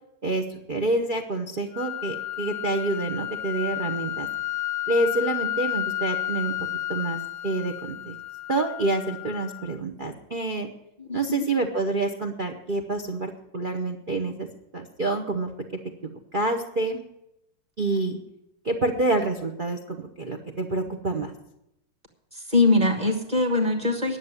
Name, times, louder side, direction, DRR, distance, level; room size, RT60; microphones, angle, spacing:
voice 1, 0.2-4.3 4.9-6.5 6.9-8.1 8.5-10.7 11.1-14.5 14.7-17.0 17.8-18.2 18.6-21.3, right 2 dB, 60° right, 5 dB, 0.5 m, -27 dB
sound 1, 1.7-9.8, left 13 dB, 80° left, 0.8 m, -32 dB
voice 2, 11.0-11.4 22.5-24.2, left 2 dB, 20° right, 1 dB, 1.5 m, -22 dB
10.5 x 7.3 x 9.6 m, 0.84 s
omnidirectional pair, 2.4 m